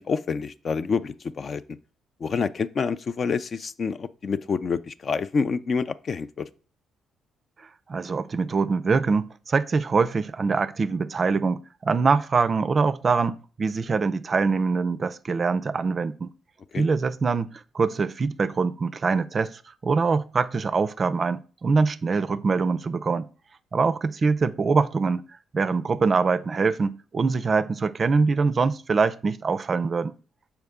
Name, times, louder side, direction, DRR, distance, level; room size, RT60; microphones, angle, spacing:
voice 1, 0.0-1.6 2.2-6.5 16.7-16.8, left 5 dB, 45° left, 0.4 m, -27 dB
voice 2, 7.9-16.3 16.8-23.3 23.7-25.2 25.5-30.1, right 4 dB, 40° right, 0.4 m, -24 dB
6.6 x 4.5 x 3.5 m
cardioid pair, 90°, 0 cm